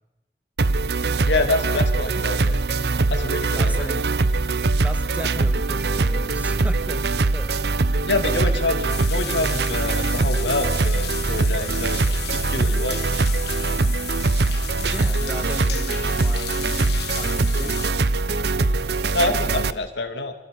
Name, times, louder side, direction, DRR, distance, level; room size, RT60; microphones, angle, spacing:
sound 1, 0.6-19.7, right 3 dB, 65° right, 0.8 m, -22 dB
voice 1, 1.2-2.6 3.1-3.9 8.1-12.0 12.3-13.0 19.1-20.3, left 2 dB, 80° left, 6 dB, 2.9 m, -26 dB
voice 2, 3.5-4.1 4.8-7.6 14.9-16.8 17.2-18.0, equal, 10° right, 8 dB, 1.9 m, -36 dB
sound 2, 8.9-17.9, left 12 dB, 65° left, 1.6 m, -35 dB
27.5 x 23.0 x 7.0 m, 1.1 s
head